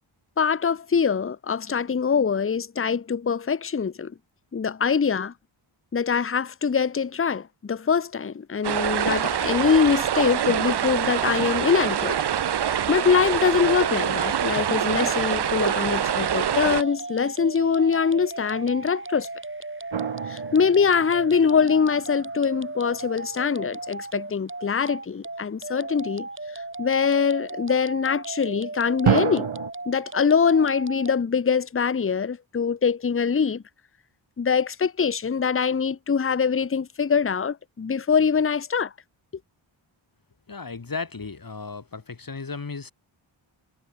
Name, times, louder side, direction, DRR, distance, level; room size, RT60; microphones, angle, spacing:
voice 1, 0.4-4.1 4.5-5.3 5.9-12.2 12.9-19.3 20.3-26.3 26.8-29.5 29.9-33.6 34.4-38.9, left 6 dB, 25° left, 0.7 m, -23 dB
sound 1, 8.6-16.8, right 9 dB, 55° right, 0.7 m, -25 dB
sound 2, 13.6-31.1, right 2 dB, 25° right, 3.8 m, -36 dB
sound 3, 19.9-22.0 29.0-29.7, right 8 dB, 75° right, 1.4 m, -27 dB
voice 2, 40.5-42.9, left 4 dB, 45° left, 2.9 m, -35 dB
wide cardioid pair, 95°, 48 cm